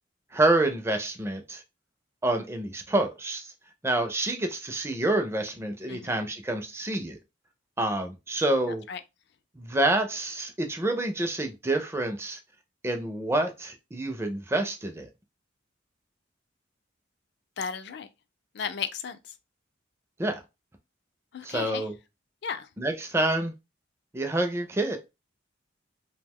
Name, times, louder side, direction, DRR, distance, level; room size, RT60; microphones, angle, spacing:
voice 1, 0.3-1.6 2.2-3.5 3.8-7.2 7.8-8.8 9.6-12.4 12.8-15.1 20.2-20.4 21.4-21.9 22.8-23.5 24.1-25.0, right 2 dB, 15° right, 0.4 m, -27 dB
voice 2, 8.7-9.0 17.6-18.1 18.5-19.3 21.3-21.9 22.4-22.7, left 6 dB, 55° left, 0.4 m, -35 dB
2.7 x 2.2 x 3.4 m
head